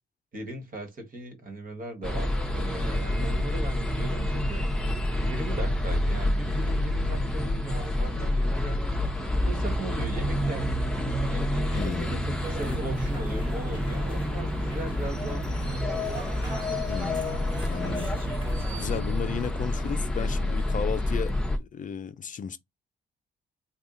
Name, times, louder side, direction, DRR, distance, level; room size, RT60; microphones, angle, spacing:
voice 1, 0.3-4.6 5.2-8.9 9.4-16.5, right 1 dB, 45° right, 1.5 m, -38 dB
sound 1, 2.0-21.6, left 1 dB, 5° left, 0.9 m, -28 dB
voice 2, 11.7-12.3 16.9-18.1 18.8-21.3 21.6-22.6, left 7 dB, 40° left, 0.5 m, -34 dB
sound 2, 12.4-19.0, equal, 25° right, 1.6 m, -38 dB
3.5 x 2.4 x 3.8 m
cardioid pair, 90°, 20 cm